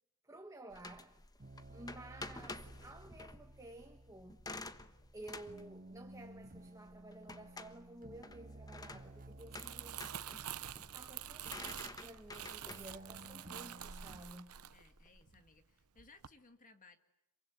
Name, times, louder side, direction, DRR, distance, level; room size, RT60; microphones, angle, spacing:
voice 1, 0.2-1.2 1.7-4.4 5.1-10.1 10.9-14.6, right 1 dB, 15° right, 1.6 m, -53 dB
sound 1, 0.7-15.2, left 2 dB, 15° left, 1.2 m, -52 dB
sound 2, 1.4-14.2, right 1 dB, 40° right, 1.2 m, -56 dB
Crumpling crinkling, 9.2-15.6 16.0-16.3, right 10 dB, 80° right, 1.0 m, -47 dB
voice 2, 14.7-17.0, left 3 dB, 35° left, 1.7 m, -62 dB
27.5 x 23.5 x 9.1 m
head